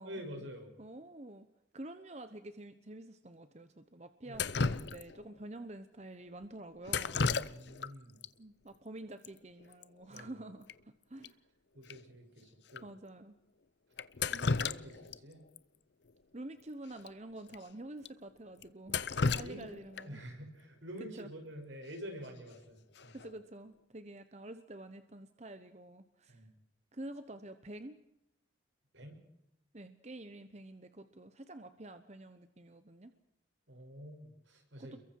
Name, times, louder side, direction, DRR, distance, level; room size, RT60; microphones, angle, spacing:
voice 1, 0.0-0.7 4.2-4.4 7.4-8.1 10.1-10.3 11.7-12.9 14.5-15.4 19.2-19.7 20.0-23.1 26.3-26.5 28.9-29.2 33.7-35.0, equal, 85° right, 3 dB, 6.3 m, -47 dB
voice 2, 0.8-1.5 1.7-7.2 8.4-11.4 12.8-13.4 14.3-14.5 16.3-20.2 21.0-21.3 23.1-26.4 26.9-28.0 29.7-33.1 34.8-35.0, right 1 dB, 35° right, 10 dB, 1.0 m, -48 dB
Drip, 4.3-5.3 6.9-7.9 8.2-8.3 9.2-9.3 9.6-9.8 10.2-10.3 10.7-10.8 11.2-11.3 11.9-12.0 12.7-12.8 14.0-15.2 15.6-15.7 17.0-17.1 17.5-17.6 18.1-18.2 18.6-20.2 22.2-22.5 23.0-23.3, left 4 dB, 65° left, 0.7 m, -34 dB
28.5 x 22.5 x 4.7 m, 0.80 s
head